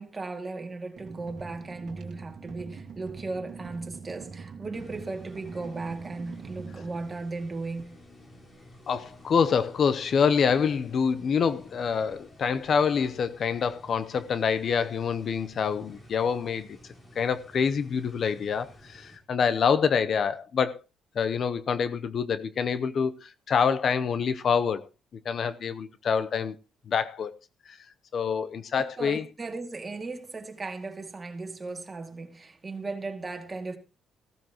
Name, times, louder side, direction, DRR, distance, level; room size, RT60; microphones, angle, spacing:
voice 1, 0.0-8.0 29.0-33.8, right 3 dB, 30° right, 2.2 m, -36 dB
sound 1, 0.9-7.8, right 5 dB, 60° right, 1.7 m, -44 dB
sound 2, 4.7-19.2, left 1 dB, 35° left, 4.4 m, -52 dB
voice 2, 8.9-16.8 17.2-20.8 21.1-24.9 25.2-26.5 26.9-27.4 27.7-27.8 28.1-29.2, left 6 dB, 55° left, 0.7 m, -26 dB
15.0 x 14.0 x 3.0 m
cardioid pair, 90°, 0 cm